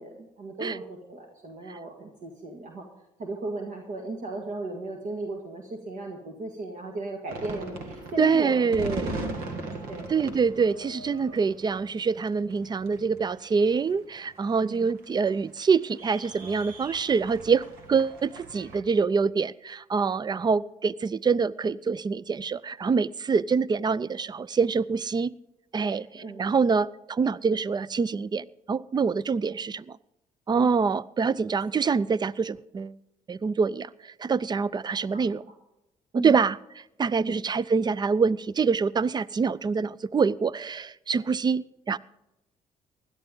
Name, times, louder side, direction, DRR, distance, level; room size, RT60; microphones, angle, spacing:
voice 1, 0.0-2.8 3.2-8.9 9.2-10.1 14.6-14.9 25.8-26.4 35.1-35.3 36.1-36.4 37.2-37.4, right 2 dB, 60° right, 1 dB, 1.9 m, -36 dB
sound 1, 7.3-18.8, right 2 dB, 85° right, 1.9 m, -39 dB
voice 2, 8.2-9.2 10.1-17.6 17.9-25.3 25.7-30.0 30.5-32.9 33.3-35.4 36.2-42.0, right 5 dB, 30° right, 20 dB, 0.4 m, -25 dB
16.5 x 11.0 x 3.8 m, 0.92 s
supercardioid pair, 75°, 15 cm